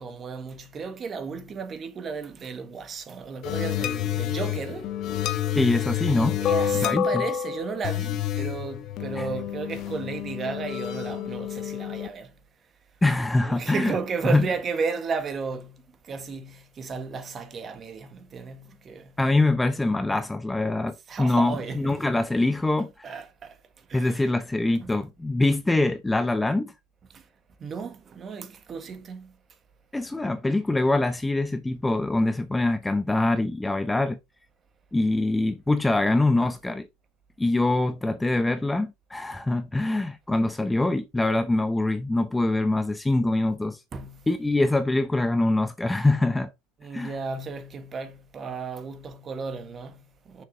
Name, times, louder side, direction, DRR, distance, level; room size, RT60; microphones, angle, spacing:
voice 1, 0.0-4.9 6.4-12.3 13.4-19.2 21.1-22.1 23.0-24.3 24.8-25.0 27.1-27.2 27.6-29.3 36.4-36.5 43.9-44.3 46.8-50.4, right 5 dB, 30° right, 1.5 m, -34 dB
sound 1, 3.4-12.1, left 10 dB, 50° left, 1.2 m, -29 dB
voice 2, 5.5-6.4 6.8-7.2 9.2-9.3 13.0-13.9 14.2-14.5 19.2-23.1 23.9-26.7 29.9-34.2 34.9-36.9 37.4-43.8 44.3-46.5 46.9-47.1, left 2 dB, 10° left, 0.6 m, -24 dB
6.7 x 6.0 x 3.7 m
supercardioid pair, 115°, 0 cm